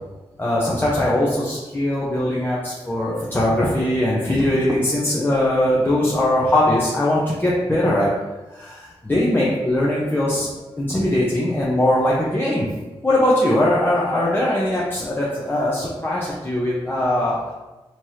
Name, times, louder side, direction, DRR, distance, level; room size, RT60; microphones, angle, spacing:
voice 1, 0.4-8.1 8.5-10.5 10.8-12.7 13.0-17.5, left 1 dB, 20° left, -7 dB, 0.9 m, -20 dB
4.4 x 3.1 x 2.8 m, 1.1 s
cardioid pair, 55°, 11 cm